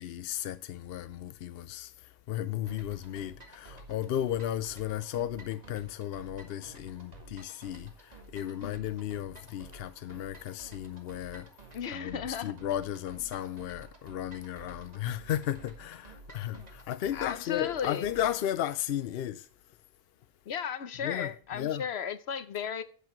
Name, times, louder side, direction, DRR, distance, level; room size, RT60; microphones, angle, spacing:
voice 1, 0.0-11.5 11.9-19.5 21.0-21.8, left 11 dB, 75° left, 0.8 m, -34 dB
sound 1, 2.7-18.5, right 2 dB, 40° right, 1.9 m, -52 dB
voice 2, 11.7-12.5 16.5-16.6 17.1-18.1 20.5-22.8, left 8 dB, 90° left, 1.1 m, -35 dB
10.5 x 8.3 x 3.0 m
omnidirectional pair, 1.0 m